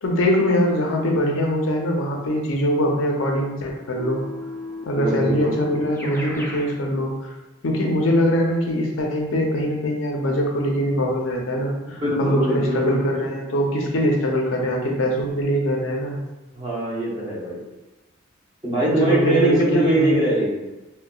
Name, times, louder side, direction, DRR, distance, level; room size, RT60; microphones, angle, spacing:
voice 1, 0.0-4.2 4.9-7.1 7.6-16.2 18.8-20.2, equal, 75° left, 1 dB, 0.6 m, -22 dB
Keyboard (musical), 4.0-6.7, left 1 dB, 10° left, 0.4 m, -34 dB
voice 2, 4.9-5.5 11.9-13.0 16.5-17.6 18.6-20.5, right 1 dB, 25° right, -5 dB, 0.7 m, -22 dB
3.8 x 2.2 x 2.3 m, 1.1 s
head